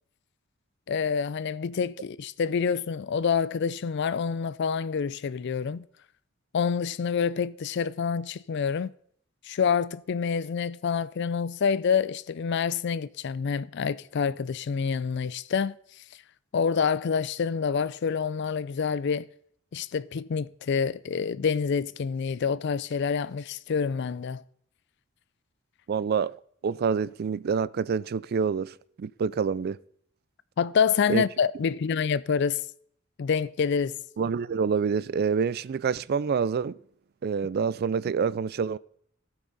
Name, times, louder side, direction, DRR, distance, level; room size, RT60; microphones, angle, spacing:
voice 1, 0.9-5.8 6.5-8.9 9.5-15.8 16.5-19.3 19.7-24.4 30.6-32.6 33.2-33.9, left 6 dB, 60° left, 0.4 m, -27 dB
voice 2, 25.9-26.3 26.6-29.8 31.1-31.2 34.2-36.8 37.2-38.8, right 6 dB, 50° right, 0.3 m, -27 dB
17.5 x 5.9 x 4.1 m
head